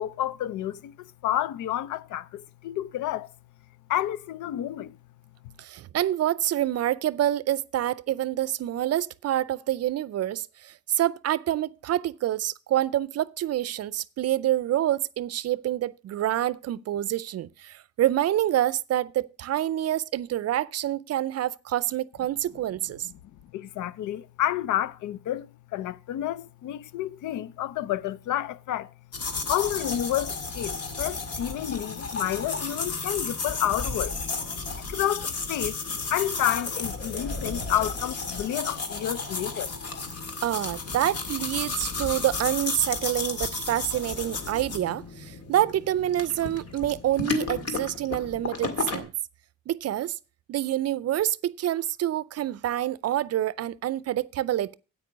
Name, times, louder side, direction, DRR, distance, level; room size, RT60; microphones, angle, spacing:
voice 1, 0.0-3.3 3.9-4.9 23.5-28.9 29.5-34.2 34.9-39.7, left 12 dB, 80° left, 0.6 m, -30 dB
voice 2, 5.6-23.1 40.4-49.1 49.7-50.2 50.5-54.7, right 12 dB, 55° right, 0.5 m, -27 dB
sound 1, 29.1-49.0, left 4 dB, 55° left, 2.1 m, -33 dB
9.2 x 8.7 x 5.0 m
cardioid pair, 90°, 30 cm